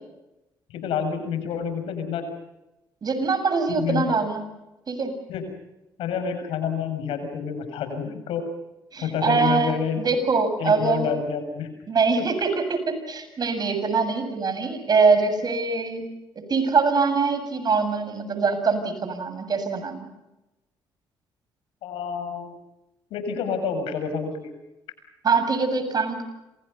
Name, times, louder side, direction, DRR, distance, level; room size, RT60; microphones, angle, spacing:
voice 1, 0.7-2.2 3.7-4.1 5.3-5.4 6.0-8.4 9.0-10.1 10.6-11.7 12.2-12.3 21.8-22.6 23.1-24.5, left 6 dB, 80° left, 8 dB, 6.9 m, -28 dB
voice 2, 3.0-4.5 4.9-5.1 8.9-11.1 11.9-20.1 25.2-26.2, right 4 dB, 50° right, 9 dB, 7.2 m, -23 dB
29.5 x 27.0 x 5.5 m, 0.97 s
supercardioid pair, 65°, 9 cm